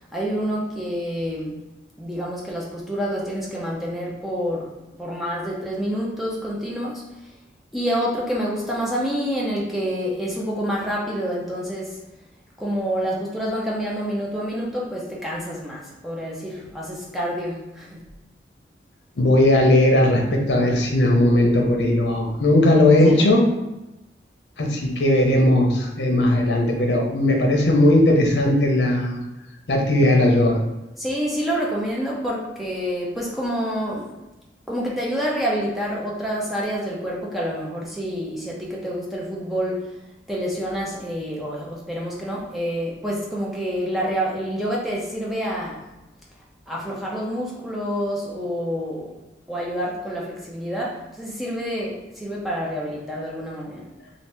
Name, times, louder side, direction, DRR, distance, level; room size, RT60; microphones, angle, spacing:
voice 1, 0.1-1.6 2.0-7.0 7.7-12.0 12.6-18.1 23.0-23.3 31.0-34.2 34.7-40.0 40.3-45.9 46.7-49.2 49.5-53.9, equal, ahead, -5 dB, 0.6 m, -28 dB
voice 2, 19.2-23.4 24.6-29.2 29.7-30.6, left 1 dB, 80° left, 1 dB, 0.7 m, -18 dB
2.8 x 2.6 x 3.3 m, 0.96 s
head